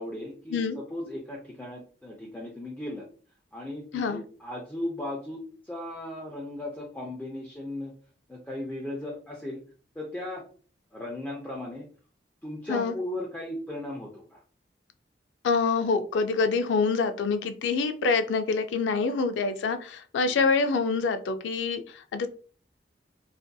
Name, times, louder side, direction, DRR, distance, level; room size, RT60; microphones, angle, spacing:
voice 1, 0.0-3.1 3.5-7.9 8.3-9.6 10.0-10.4 10.9-11.9 12.4-14.4 20.2-20.4, left 1 dB, 10° left, -2 dB, 0.4 m, -37 dB
voice 2, 15.4-22.3, left 4 dB, 90° left, 9 dB, 0.3 m, -26 dB
2.5 x 2.5 x 2.2 m, 0.42 s
head